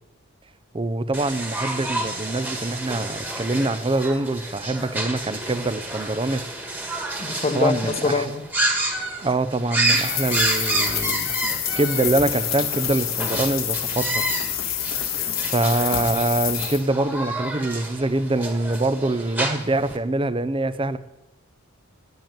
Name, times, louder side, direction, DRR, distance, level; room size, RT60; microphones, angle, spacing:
voice 1, 0.7-6.4 7.5-8.3 9.2-11.3 11.8-14.2 15.5-21.0, right 2 dB, 25° right, 0.6 m, -24 dB
sound 1, 1.1-20.0, right 2 dB, 10° right, 1.7 m, -29 dB
voice 2, 7.2-8.4, left 4 dB, 30° left, 1.0 m, -24 dB
sound 2, 9.8-16.8, left 10 dB, 80° left, 1.5 m, -27 dB
10.5 x 8.9 x 9.0 m
head